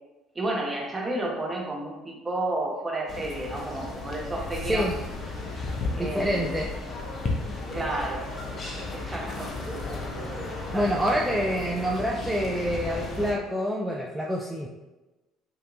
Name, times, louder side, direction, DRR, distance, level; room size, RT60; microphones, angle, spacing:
voice 1, 0.3-4.9 5.9-6.5 7.7-8.3 8.9-9.5 10.7-10.9, right 2 dB, 20° right, -2 dB, 1.3 m, -31 dB
sound 1, 3.1-13.3, left 2 dB, 40° left, 1.0 m, -34 dB
voice 2, 6.0-6.7 10.7-14.7, equal, 5° right, -2 dB, 0.5 m, -27 dB
6.4 x 2.9 x 2.5 m, 1.1 s
figure-of-eight pair, 55°, 0 cm